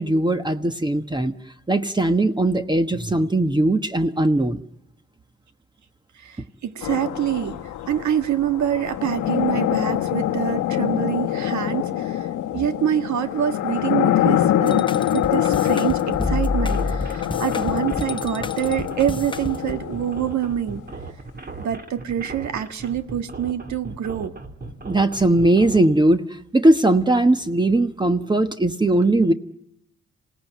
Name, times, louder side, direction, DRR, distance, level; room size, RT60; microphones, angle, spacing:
voice 1, 0.0-1.3 1.7-4.6 24.9-26.2 26.5-29.3, right 2 dB, 15° right, 9 dB, 1.1 m, -19 dB
voice 2, 6.2-7.6 7.9-14.8 15.1-20.8 21.6-24.3, right 10 dB, 70° right, 9 dB, 1.6 m, -26 dB
sound 1, 6.8-20.6, left 12 dB, 85° left, 1.0 m, -24 dB
sound 2, 14.7-19.8, left 3 dB, 15° left, 0.9 m, -28 dB
sound 3, 16.5-25.8, right 3 dB, 30° right, 2.5 m, -37 dB
27.0 x 18.0 x 9.3 m, 0.83 s
cardioid pair, 90°, 30 cm